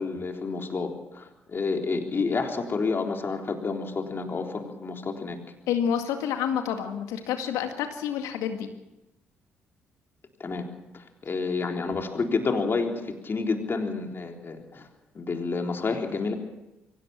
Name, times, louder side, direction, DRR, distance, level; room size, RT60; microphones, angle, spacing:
voice 1, 0.0-5.4 10.4-10.6 10.9-14.9 15.1-16.3, left 4 dB, 40° left, 3 dB, 3.8 m, -29 dB
voice 2, 5.7-8.7, left 8 dB, 70° left, 6 dB, 2.1 m, -28 dB
23.5 x 18.0 x 7.4 m, 0.95 s
hypercardioid pair, 45°, 6 cm